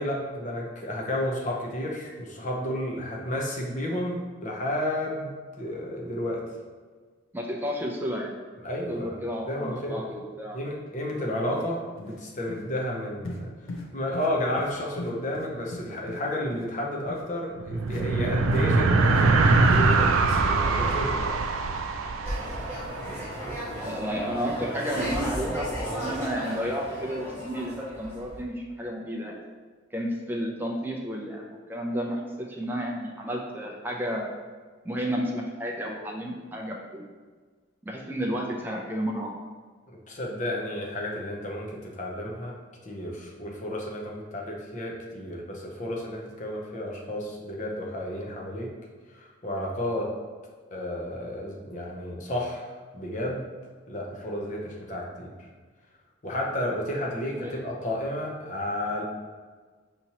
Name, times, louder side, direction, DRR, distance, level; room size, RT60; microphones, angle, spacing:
voice 1, 0.0-6.4 8.6-9.2 9.5-10.1 10.5-13.5 13.9-21.4 39.9-42.5 42.8-48.7 49.1-50.1 50.7-53.5 53.9-55.5 56.2-59.0, left 1 dB, 35° left, -1 dB, 0.6 m, -32 dB
voice 2, 7.3-8.3 8.9-10.6 23.8-29.3 29.9-34.3 34.8-37.0 37.9-39.3 57.4-57.5, equal, 10° right, -1 dB, 0.4 m, -32 dB
sound 1, 11.0-11.1 11.5-11.7 12.0-12.2 12.5-12.6 13.2-13.4 13.7-13.9 14.1-14.3 14.6-14.7 15.0-16.2 16.5-16.7 17.1-17.2 17.9-18.0 18.4-18.7 19.1-19.2 19.6-19.8, left 2 dB, 80° left, 0.6 m, -39 dB
sound 2, 17.5-23.3, right 3 dB, 85° right, 0.4 m, -23 dB
sound 3, 22.2-28.4, equal, 10° left, 1.1 m, -34 dB
5.0 x 2.9 x 2.9 m, 1.5 s
head